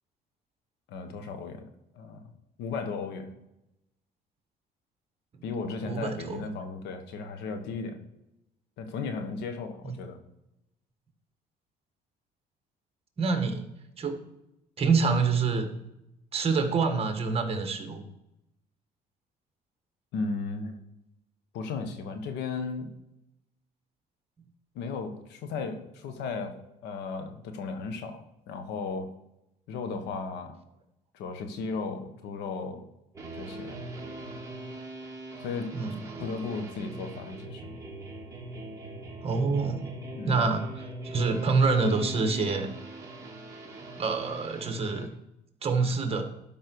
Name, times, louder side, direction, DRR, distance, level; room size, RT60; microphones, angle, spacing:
voice 1, 0.9-1.6 1.9-2.3 2.6-3.3 5.4-8.0 8.8-10.2 20.1-20.8 21.5-22.9 24.7-26.6 26.8-29.1 29.7-30.6 31.1-32.8 33.3-33.8 35.4-35.7 36.2-37.7 40.1-40.4, left 4 dB, 85° left, 7 dB, 1.4 m, -35 dB
voice 2, 5.9-6.4 9.8-9.9 13.2-13.6 14.0-14.2 14.8-15.7 16.3-18.0 35.7-36.2 39.2-39.8 40.2-42.7 44.0-45.1 45.6-46.2, right 4 dB, 35° right, 6 dB, 1.7 m, -26 dB
sound 1, 33.1-45.1, right 2 dB, 20° right, 2.3 m, -41 dB
12.0 x 5.5 x 4.7 m, 0.87 s
cardioid pair, 110°, 17 cm